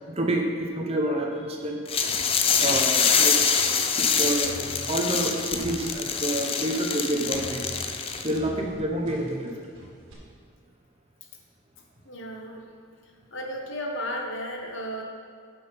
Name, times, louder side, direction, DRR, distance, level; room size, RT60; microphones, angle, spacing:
voice 1, 0.1-1.8 2.5-3.4 4.0-4.5 4.8-7.7 8.2-9.5, right 1 dB, 30° right, 1 dB, 0.8 m, -28 dB
sound 1, 1.9-8.4, left 6 dB, 25° left, 0.4 m, -25 dB
sound 2, 4.4-6.0 7.3-10.1, equal, 60° right, 2.1 m, -41 dB
voice 2, 12.0-12.6 13.3-15.0, equal, 55° left, 1 dB, 1.2 m, -34 dB
9.1 x 5.8 x 5.6 m, 2.1 s
head